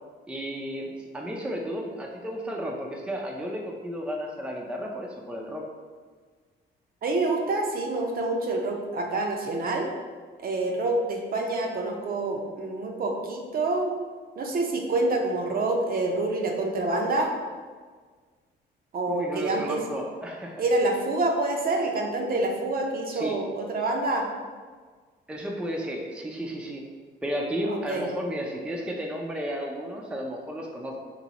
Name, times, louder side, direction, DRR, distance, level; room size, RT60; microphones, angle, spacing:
voice 1, 0.3-5.6 19.1-20.6 23.1-23.4 25.3-26.8 27.2-31.0, equal, 5° right, -1 dB, 0.5 m, -33 dB
voice 2, 7.0-9.9 10.4-13.9 14.4-17.3 18.9-19.8 20.6-24.3 27.7-28.1, right 2 dB, 50° right, 1 dB, 0.6 m, -27 dB
3.0 x 2.7 x 3.9 m, 1.5 s
cardioid pair, 90°, 20 cm